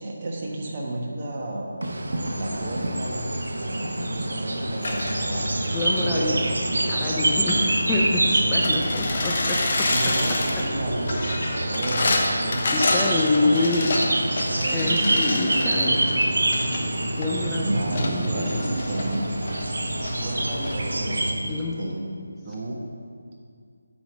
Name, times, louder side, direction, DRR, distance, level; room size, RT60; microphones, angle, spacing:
voice 1, 0.0-2.0 2.3-5.6 6.0-6.5 8.4-8.8 9.7-13.8 14.5-15.2 17.6-19.3 20.1-22.1 22.4-22.8, right 1 dB, 35° right, -2 dB, 1.5 m, -32 dB
sound 1, 1.8-21.3, right 1 dB, 75° right, 1.0 m, -26 dB
sound 2, 4.8-20.8, left 2 dB, 45° left, 1.1 m, -29 dB
voice 2, 5.7-6.3 6.9-9.9 12.7-13.9 14.7-16.0 17.2-17.7 18.0-18.6 21.4-21.8, left 2 dB, 10° left, -4 dB, 0.6 m, -26 dB
8.8 x 5.2 x 6.2 m, 2.2 s
figure-of-eight pair, 165°, 0 cm